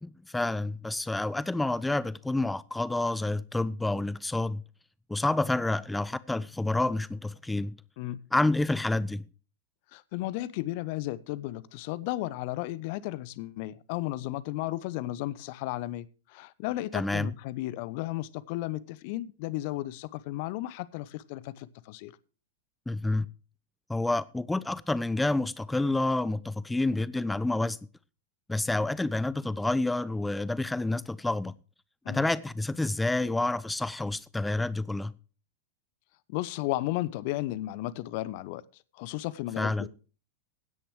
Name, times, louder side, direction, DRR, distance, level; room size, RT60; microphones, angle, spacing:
voice 1, 0.0-4.6 5.1-7.8 8.3-9.2 16.9-17.3 22.9-23.3 23.9-27.8 28.5-31.6 32.1-35.1 39.6-39.9, left 2 dB, 5° left, 0.7 m, -29 dB
voice 2, 9.9-22.1 32.0-32.3 36.3-38.6 38.9-39.9, left 16 dB, 45° left, 0.8 m, -34 dB
16.0 x 10.0 x 3.2 m
figure-of-eight pair, 90°, 0 cm